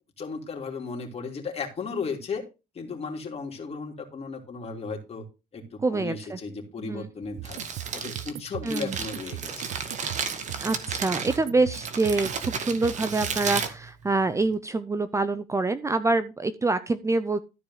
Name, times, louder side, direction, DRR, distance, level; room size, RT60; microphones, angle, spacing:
voice 1, 0.2-2.4 2.7-5.2 5.5-7.7 7.9-9.7, left 4 dB, 35° left, 2 dB, 3.2 m, -35 dB
voice 2, 5.8-6.4 6.8-7.1 8.6-9.0 10.6-12.3 12.6-17.4, right 3 dB, 15° right, 13 dB, 0.6 m, -26 dB
Crumpling crinkling, 7.2-14.5, right 6 dB, 45° right, 1.8 m, -33 dB
sound 1, 7.4-13.6, right 20 dB, 90° right, 0.4 m, -40 dB
13.0 x 4.8 x 5.7 m, 0.28 s
cardioid pair, 110°, 17 cm